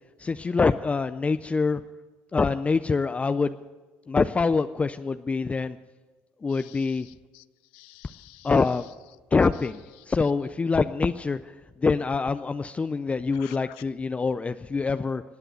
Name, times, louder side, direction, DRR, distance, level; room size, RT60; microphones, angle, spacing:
voice 1, 0.2-1.8 2.3-3.6 4.1-5.8 6.4-7.1 8.4-8.9 9.3-15.2, left 4 dB, 25° left, 11 dB, 0.5 m, -25 dB
voice 2, 6.5-7.4 7.7-8.5 13.3-13.8, left 21 dB, 80° left, 19 dB, 0.4 m, -50 dB
18.0 x 9.0 x 8.0 m, 1.3 s
hypercardioid pair, 70°, 5 cm